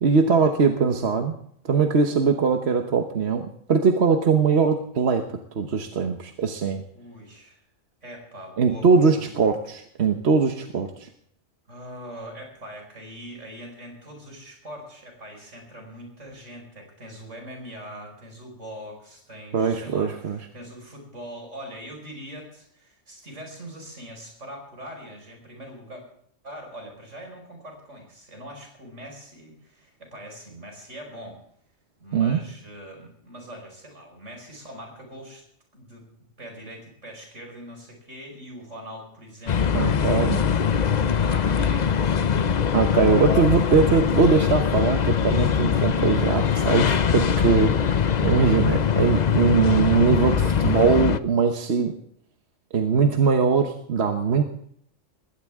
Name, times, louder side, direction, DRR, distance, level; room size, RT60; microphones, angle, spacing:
voice 1, 0.0-1.4 1.6-6.8 8.6-11.1 19.5-20.4 32.1-32.4 39.7-40.4 42.7-51.9 52.7-54.4, right 5 dB, 60° right, 5 dB, 1.3 m, -21 dB
voice 2, 6.9-7.6 8.0-9.5 11.7-26.0 26.4-31.4 32.0-35.4 35.7-36.0 36.4-42.6 47.1-47.4, equal, 75° right, 2 dB, 5.7 m, -42 dB
sound 1, 39.5-51.2, left 7 dB, 45° left, 0.7 m, -22 dB
20.5 x 16.5 x 3.6 m, 0.67 s
omnidirectional pair, 1.3 m